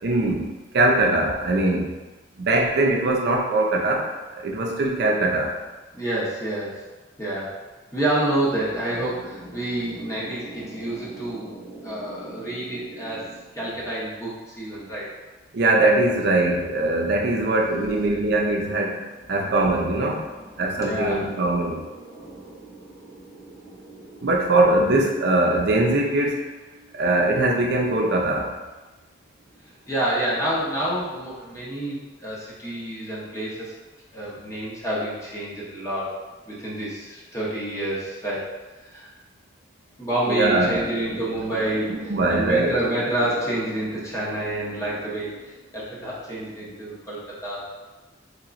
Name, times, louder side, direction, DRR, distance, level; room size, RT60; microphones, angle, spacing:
voice 1, 0.0-1.9 2.4-4.1 4.4-5.5 15.5-19.0 19.3-20.2 20.6-21.8 24.2-26.5 27.0-28.5 40.3-40.8 41.9-42.7, right 2 dB, 60° right, 0 dB, 0.5 m, -21 dB
voice 2, 5.9-6.7 7.2-7.5 7.9-15.1 17.6-17.9 19.3-19.8 20.2-24.3 29.9-33.7 34.1-36.1 36.5-38.4 38.9-39.1 40.0-47.6, right 1 dB, 15° left, -8 dB, 0.8 m, -29 dB
3.4 x 3.0 x 2.5 m, 1.2 s
head